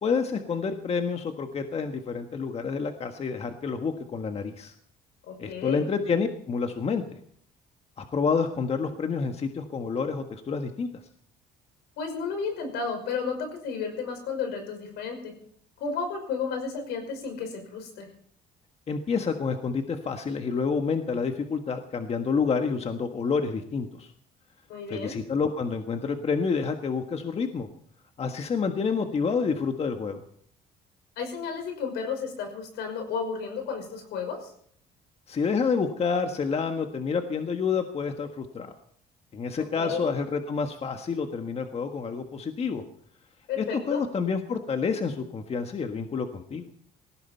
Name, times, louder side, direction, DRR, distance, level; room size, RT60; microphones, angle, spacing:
voice 1, 0.0-4.7 5.4-7.2 8.0-10.9 18.9-24.1 24.9-27.7 28.2-30.2 35.3-38.7 39.3-42.8 43.6-46.7, left 5 dB, 35° left, 6 dB, 1.5 m, -28 dB
voice 2, 5.3-5.8 12.0-15.3 15.8-18.1 24.7-25.1 31.2-34.5 39.8-40.0 43.5-44.0, left 5 dB, 80° left, 5 dB, 5.7 m, -32 dB
19.0 x 15.5 x 4.5 m, 0.62 s
cardioid pair, 110°, 17 cm